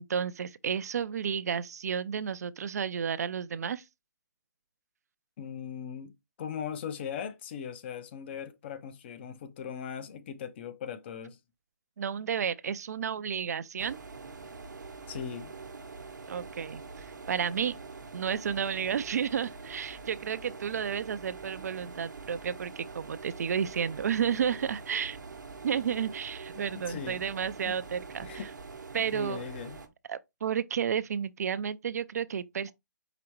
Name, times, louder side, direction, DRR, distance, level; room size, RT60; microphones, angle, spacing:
voice 1, 0.0-3.8 12.0-14.0 16.3-17.7 18.1-25.2 25.6-28.3 28.9-29.5 30.1-32.7, right 7 dB, 60° right, 0.4 m, -32 dB
voice 2, 5.4-6.1 6.4-11.4 15.1-15.5 26.7-27.2 27.6-27.7 28.2-28.5 28.9-29.8, left 8 dB, 35° left, 0.6 m, -39 dB
sound 1, 13.8-29.9, right 4 dB, 80° right, 0.9 m, -45 dB
4.9 x 3.4 x 3.0 m
hypercardioid pair, 145°, 10 cm